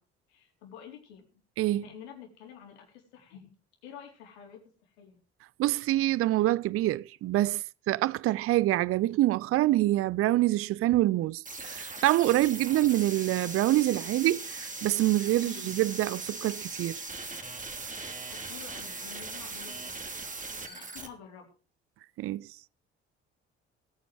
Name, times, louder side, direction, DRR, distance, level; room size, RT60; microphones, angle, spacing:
voice 1, 0.3-1.4 1.7-3.6 3.8-5.2 15.3-15.8 18.0-20.0 20.6-21.5, left 8 dB, 70° left, 4.1 m, -49 dB
voice 2, 5.6-17.0 22.2-22.6, right 16 dB, 45° right, 0.5 m, -26 dB
sound 1, 11.4-21.1, right 3 dB, 25° right, 3.0 m, -39 dB
18.0 x 9.1 x 4.8 m
figure-of-eight pair, 45°, 33 cm